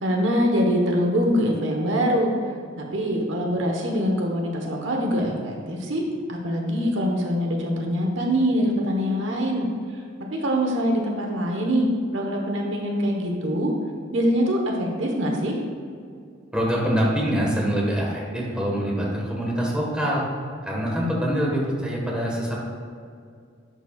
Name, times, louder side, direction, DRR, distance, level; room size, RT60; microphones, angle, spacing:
voice 1, 0.0-2.3 2.9-6.0 6.3-9.7 10.3-13.7 14.1-15.6, equal, 65° right, 1 dB, 1.2 m, -24 dB
voice 2, 16.5-20.2 20.6-22.6, equal, 5° right, -4 dB, 1.5 m, -24 dB
11.0 x 8.0 x 2.4 m, 2.3 s
head